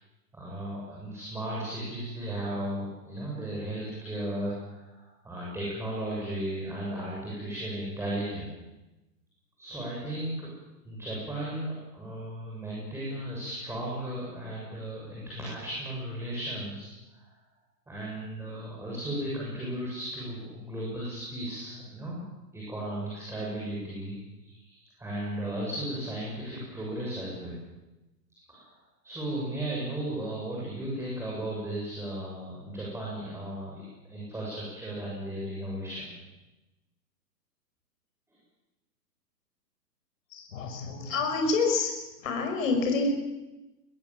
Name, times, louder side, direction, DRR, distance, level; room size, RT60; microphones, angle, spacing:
voice 1, 0.3-8.5 9.6-10.5 10.8-17.3 17.9-22.3 22.5-27.6 28.5-28.7 29.0-36.1, right 1 dB, 5° right, -5 dB, 7.1 m, -35 dB
voice 2, 40.3-41.9 42.2-43.1, left 4 dB, 50° left, 3 dB, 6.1 m, -27 dB
22.5 x 21.5 x 7.6 m, 1.0 s
figure-of-eight pair, 125°, 50 cm